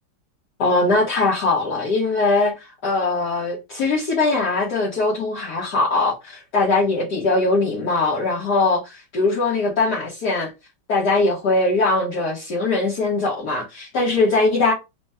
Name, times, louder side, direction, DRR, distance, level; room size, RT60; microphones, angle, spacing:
voice 1, 0.6-10.5 10.9-14.7, left 3 dB, 55° left, 1.5 m, -21 dB
4.2 x 2.2 x 3.4 m
omnidirectional pair, 2.3 m